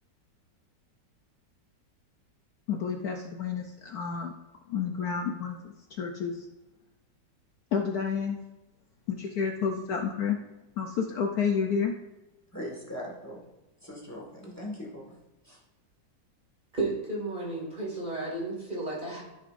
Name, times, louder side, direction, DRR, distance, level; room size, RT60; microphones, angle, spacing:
voice 1, 2.7-4.3 4.7-6.5 7.7-8.4 9.1-10.4 10.8-12.0, left 6 dB, 65° left, 3 dB, 1.1 m, -30 dB
voice 2, 12.5-13.4 13.8-15.1 15.4-15.6, left 1 dB, 10° left, -2 dB, 1.7 m, -40 dB
voice 3, 16.7-19.2, right 2 dB, 25° right, -4 dB, 2.4 m, -33 dB
14.0 x 6.0 x 2.6 m, 1.0 s
omnidirectional pair, 1.9 m